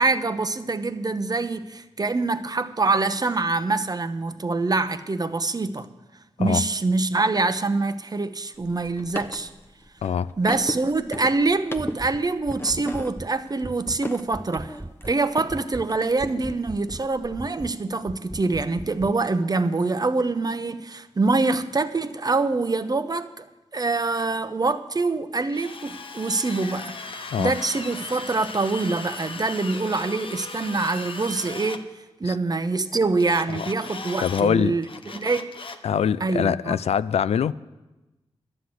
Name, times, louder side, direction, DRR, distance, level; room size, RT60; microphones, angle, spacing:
voice 1, 0.0-5.9 6.4-9.5 10.4-23.4 23.7-26.9 27.4-31.9 32.2-34.9 35.1-35.5 36.2-36.8, right 3 dB, 35° right, 0.9 m, -25 dB
sound 1, 8.5-15.6 15.9-17.4, left 1 dB, 20° left, 1.0 m, -37 dB
sound 2, 11.8-12.2 12.5-13.3 13.6-14.0 14.3-15.2 15.5-15.9 16.2-17.1 17.4-17.8 18.1-19.2, right 1 dB, 10° right, 0.4 m, -38 dB
Drill, 25.5-31.8 33.2-34.4 34.8-35.9, left 3 dB, 55° left, 1.0 m, -37 dB
voice 2, 34.2-34.8 35.8-37.5, left 8 dB, 80° left, 0.4 m, -23 dB
11.0 x 9.7 x 7.8 m
cardioid pair, 55°, 11 cm